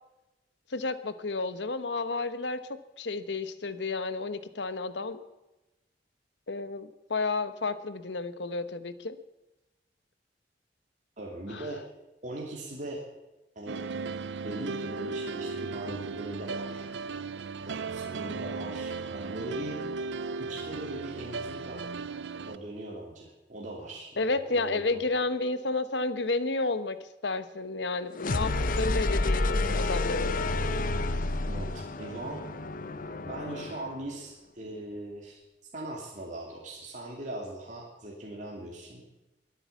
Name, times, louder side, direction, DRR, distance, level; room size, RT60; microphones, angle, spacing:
voice 1, 0.7-5.2 6.5-9.2 11.5-11.6 24.2-30.3, left 3 dB, 75° left, 13 dB, 1.1 m, -31 dB
voice 2, 11.2-11.9 12.2-13.0 13.5-13.8 14.4-16.9 17.7-19.8 20.4-21.9 22.3-25.2 31.5-32.4 33.2-35.4 35.7-39.0, right 1 dB, 45° right, -2 dB, 2.8 m, -40 dB
sound 1, 13.7-22.6, right 4 dB, 80° right, 0.6 m, -36 dB
sound 2, 28.2-34.0, left 2 dB, 50° left, 0.9 m, -29 dB
22.5 x 8.9 x 7.1 m, 1.0 s
head